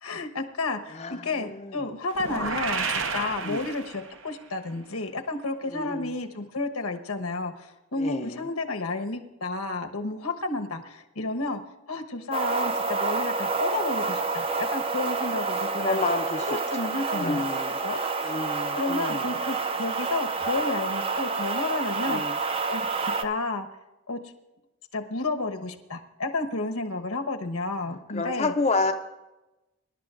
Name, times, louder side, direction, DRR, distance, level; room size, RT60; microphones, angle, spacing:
voice 1, 0.0-11.6 11.9-16.0 16.4-17.4 17.8-18.5 18.7-22.4 22.7-22.9 23.2-23.7 24.1-24.2 24.9-28.5, left 3 dB, 90° left, 5 dB, 1.1 m, -31 dB
voice 2, 1.0-1.8 2.4-2.5 3.4-3.6 5.7-6.1 8.0-8.4 15.8-17.8 18.2-19.2 22.1-22.4 28.1-28.9, left 3 dB, 30° left, 5 dB, 0.5 m, -30 dB
sound 1, 2.1-4.3, right 4 dB, 60° right, 0.8 m, -31 dB
sound 2, 12.3-23.2, right 4 dB, 25° right, 0.5 m, -28 dB
25.0 x 11.5 x 2.5 m, 1.0 s
head